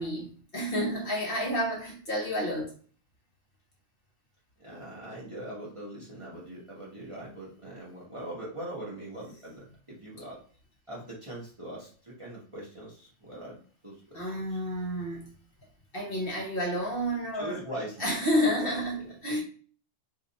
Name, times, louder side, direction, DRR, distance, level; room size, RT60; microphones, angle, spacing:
voice 1, 0.0-2.7 14.1-15.3 15.9-17.6 18.0-19.4, equal, 50° left, 1.1 m, -30 dB
voice 2, 4.6-10.4 10.9-13.6 13.8-14.6 17.3-19.4, right 1 dB, 25° right, 1.1 m, -42 dB
2.8 x 2.4 x 4.0 m
omnidirectional pair, 1.4 m